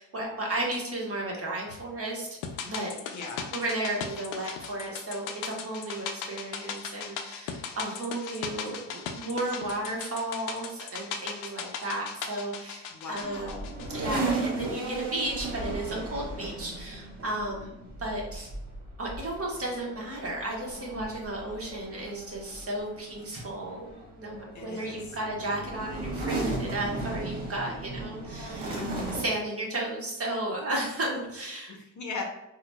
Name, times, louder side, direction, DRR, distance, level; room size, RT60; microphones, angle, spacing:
voice 1, 0.0-2.9 3.5-13.7 13.9-18.5 19.0-28.8 29.1-31.7, right 1 dB, 35° right, -3 dB, 1.1 m, -34 dB
sound 1, 2.4-14.8 15.1-15.2, left 6 dB, 80° left, 0.5 m, -38 dB
voice 2, 3.1-3.5 12.9-13.7 24.5-25.2 31.7-32.2, left 4 dB, 45° left, 1 dB, 0.7 m, -39 dB
sound 2, 13.2-29.3, right 2 dB, 50° right, 1.3 m, -36 dB
3.8 x 2.2 x 2.2 m, 0.90 s
supercardioid pair, 65°, 43 cm